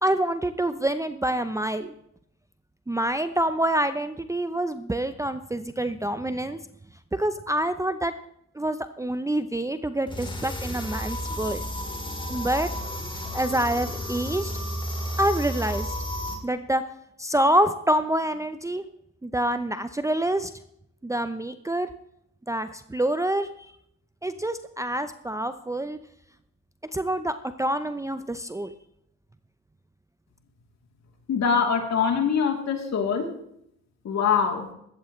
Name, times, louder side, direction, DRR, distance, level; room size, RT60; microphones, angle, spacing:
voice 1, 0.0-1.9 2.9-6.6 7.1-8.1 8.5-11.6 12.3-12.7 13.3-14.5 15.2-15.9 16.4-16.8 17.2-18.9 19.2-20.5 21.0-21.9 22.5-23.5 24.2-26.0 26.9-28.7, right 1 dB, 10° right, 10 dB, 0.7 m, -26 dB
sound 1, 10.1-16.4, equal, 15° left, 3.0 m, -32 dB
voice 2, 31.3-33.3 34.0-34.7, left 6 dB, 60° left, 2 dB, 3.2 m, -23 dB
16.0 x 12.5 x 3.2 m, 0.74 s
cardioid pair, 90°, 30 cm